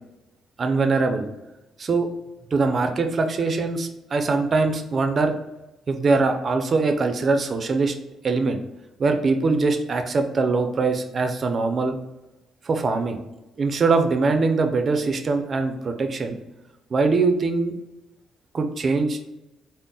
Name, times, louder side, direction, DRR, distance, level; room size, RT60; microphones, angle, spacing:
voice 1, 0.6-1.3 1.8-2.1 2.5-5.3 5.9-8.0 8.2-8.6 9.0-12.0 12.6-13.2 13.6-16.4 16.9-17.7 18.5-19.2, right 3 dB, 45° right, 6 dB, 0.5 m, -22 dB
3.8 x 2.1 x 3.8 m, 0.98 s
cardioid pair, 90°, 0 cm